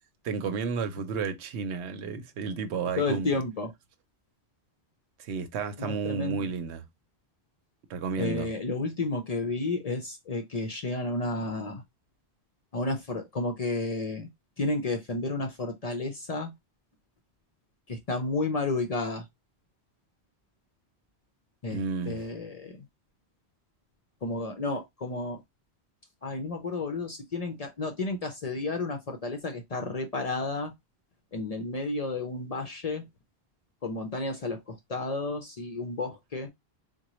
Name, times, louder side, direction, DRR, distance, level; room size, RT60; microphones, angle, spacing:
voice 1, 0.2-3.4 5.2-6.8 7.9-8.5 21.7-22.2, right 5 dB, 90° right, 0.9 m, -32 dB
voice 2, 3.0-3.7 5.8-6.5 8.2-11.8 12.7-14.3 14.6-16.5 17.9-19.2 21.6-21.8 22.1-22.7 24.2-25.4 26.2-30.7 31.3-33.0 33.8-36.5, left 3 dB, 50° left, 0.5 m, -31 dB
3.8 x 2.2 x 2.9 m
omnidirectional pair, 1.1 m